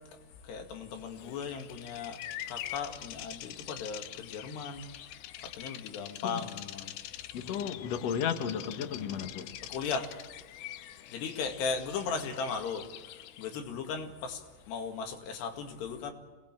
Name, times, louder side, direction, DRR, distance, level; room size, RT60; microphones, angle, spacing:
voice 1, 0.0-2.2 2.5-7.0 9.7-10.1 11.1-16.1, left 5 dB, 90° left, 4.3 m, -37 dB
Bird vocalization bird call bird song, 1.0-13.6, left 13 dB, 75° left, 2.4 m, -45 dB
voice 2, 7.3-9.5, left 8 dB, 55° left, 2.0 m, -34 dB
27.0 x 20.0 x 7.5 m
omnidirectional pair, 4.7 m